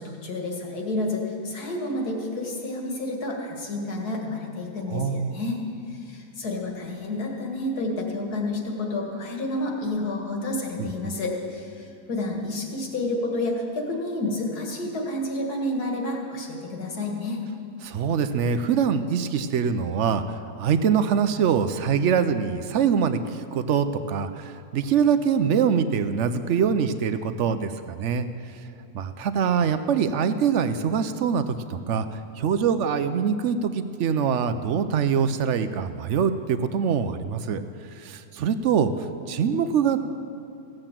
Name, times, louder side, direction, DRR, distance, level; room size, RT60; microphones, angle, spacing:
voice 1, 0.0-5.6 5.9-17.4, left 2 dB, 70° left, 0 dB, 2.3 m, -30 dB
voice 2, 4.9-5.4 10.8-11.1 17.8-28.3 28.9-37.6 37.9-40.0, right 7 dB, 65° right, 11 dB, 0.8 m, -24 dB
16.5 x 7.8 x 7.4 m, 2.8 s
omnidirectional pair, 1.7 m